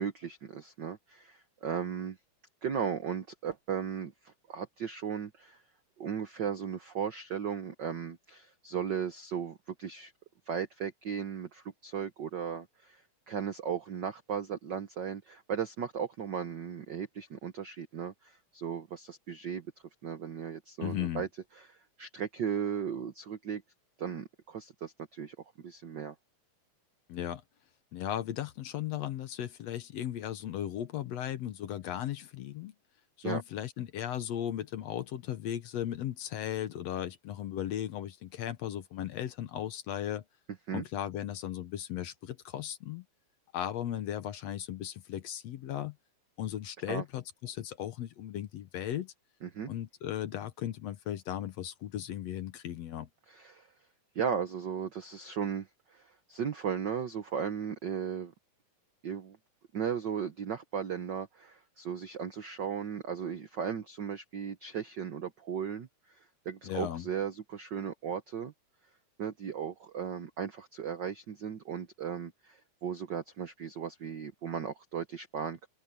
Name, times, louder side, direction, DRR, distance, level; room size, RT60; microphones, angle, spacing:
voice 1, 0.0-2.2 2.6-5.6 6.0-10.1 10.5-13.0 13.3-19.7 20.0-21.3 21.6-23.6 24.0-26.1 33.2-33.4 40.7-40.8 46.9-47.0 49.4-49.7 53.3-53.7 54.1-58.3 59.0-59.4 59.7-65.9 66.4-68.5 69.2-75.7, right 8 dB, 75° right, 1.0 m, -36 dB
voice 2, 20.8-21.2 27.1-27.4 27.9-32.7 33.2-40.2 40.7-43.0 43.5-46.0 46.4-49.1 49.7-53.1 66.6-67.1, left 11 dB, 65° left, 2.0 m, -36 dB
open air
omnidirectional pair, 3.5 m